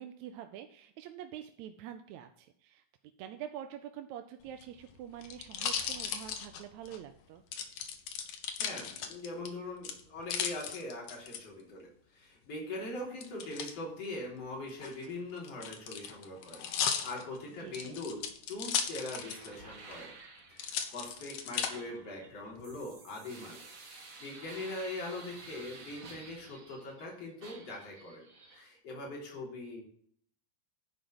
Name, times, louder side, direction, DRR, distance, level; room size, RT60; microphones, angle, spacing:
voice 1, 0.0-2.8 3.2-7.4 17.6-18.0, right 10 dB, 75° right, 7 dB, 1.7 m, -46 dB
sound 1, 4.5-7.0 7.5-9.5 9.8-11.4 13.2-13.7 14.7-19.6 19.9-20.0 20.6-21.7 22.3-22.9, left 8 dB, 70° left, 2.6 m, -36 dB
voice 2, 8.6-20.1 20.5-28.2 28.5-29.9, left 2 dB, 45° left, -2 dB, 4.5 m, -42 dB
sound 2, 19.1-27.1 27.4-28.6, right 3 dB, 35° right, 1.4 m, -52 dB
11.0 x 5.1 x 7.8 m, 0.62 s
omnidirectional pair, 3.9 m